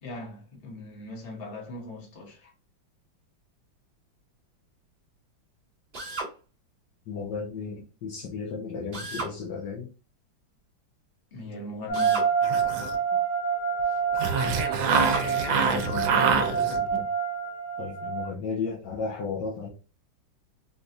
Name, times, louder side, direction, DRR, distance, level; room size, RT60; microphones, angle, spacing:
voice 1, 0.0-2.5 11.3-12.3, left 1 dB, 35° left, 1.1 m, -40 dB
Drill, 5.9-6.3 8.9-9.4 11.9-12.3 14.9-15.3, right 2 dB, 35° right, 1.2 m, -34 dB
voice 2, 7.1-9.9 15.5-17.1 17.8-19.7, left 5 dB, 70° left, 1.3 m, -35 dB
sound 1, 11.9-18.3, right 6 dB, 50° left, 1.4 m, -28 dB
sound 2, 12.4-13.1 14.1-17.0, right 5 dB, 85° right, 1.4 m, -26 dB
4.1 x 2.3 x 2.5 m
omnidirectional pair, 2.1 m